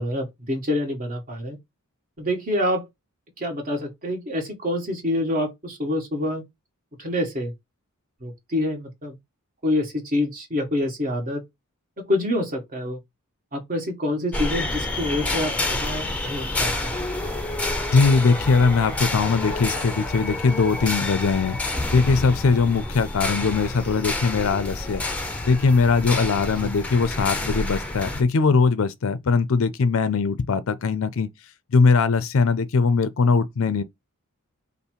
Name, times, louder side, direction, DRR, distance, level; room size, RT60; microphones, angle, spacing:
voice 1, 0.0-1.6 2.2-2.9 3.4-6.4 7.0-7.5 8.2-9.2 9.6-11.4 12.0-13.0 13.5-16.7 26.6-26.7, left 1 dB, 40° right, 1.5 m, -26 dB
sound 1, 14.3-28.2, left 2 dB, 5° left, 0.6 m, -28 dB
voice 2, 17.9-21.6 21.9-25.0 25.4-31.3 31.7-33.8, left 4 dB, 65° left, 0.5 m, -20 dB
5.5 x 2.1 x 4.5 m
head